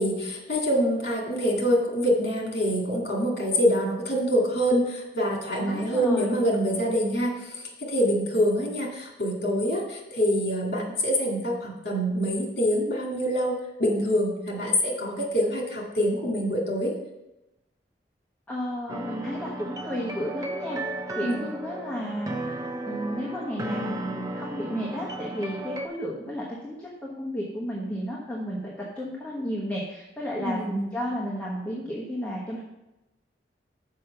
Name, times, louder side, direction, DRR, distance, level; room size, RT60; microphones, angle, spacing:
voice 1, 0.0-13.5 13.8-16.9 21.2-21.4 30.4-30.8, equal, 60° left, -1 dB, 2.2 m, -25 dB
voice 2, 5.6-6.3 18.5-20.8 21.2-32.6, equal, 10° left, -5 dB, 1.1 m, -33 dB
sound 1, 18.9-25.9, right 1 dB, 20° right, 0.5 m, -34 dB
6.4 x 5.2 x 6.7 m, 0.96 s
head